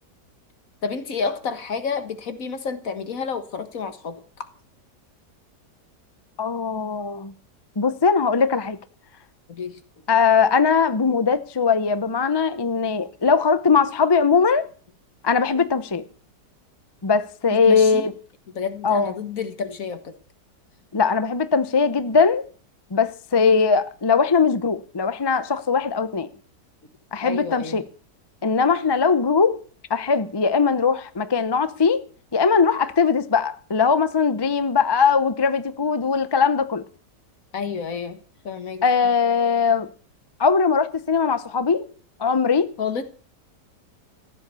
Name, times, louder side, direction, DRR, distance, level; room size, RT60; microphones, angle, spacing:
voice 1, 0.8-4.5 9.5-9.8 11.1-11.2 17.5-18.1 18.5-20.2 27.2-27.8 37.5-38.2 38.4-38.8 42.8-43.0, left 5 dB, 55° left, 1.8 m, -30 dB
voice 2, 6.4-7.3 7.8-8.8 10.1-14.6 15.2-16.0 17.0-18.1 18.8-19.1 20.9-22.4 22.9-26.3 27.1-27.8 28.4-29.6 29.9-32.0 32.3-36.8 38.8-39.9 40.4-41.9 42.2-42.7, left 5 dB, 35° left, 0.4 m, -20 dB
15.0 x 11.0 x 6.9 m
omnidirectional pair, 1.9 m